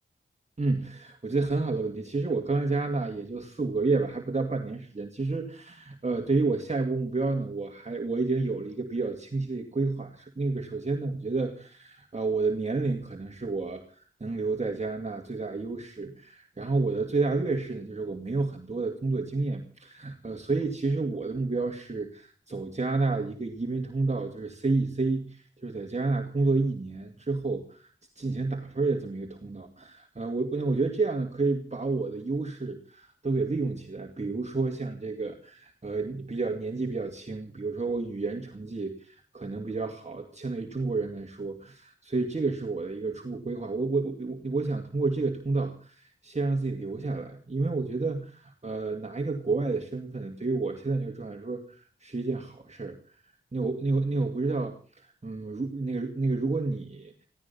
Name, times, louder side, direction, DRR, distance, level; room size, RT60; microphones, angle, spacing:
voice 1, 0.6-27.9 28.2-53.2 53.5-57.1, right 3 dB, 35° right, 3 dB, 2.3 m, -30 dB
16.0 x 15.5 x 5.5 m, 0.42 s
cardioid pair, 55°, 21 cm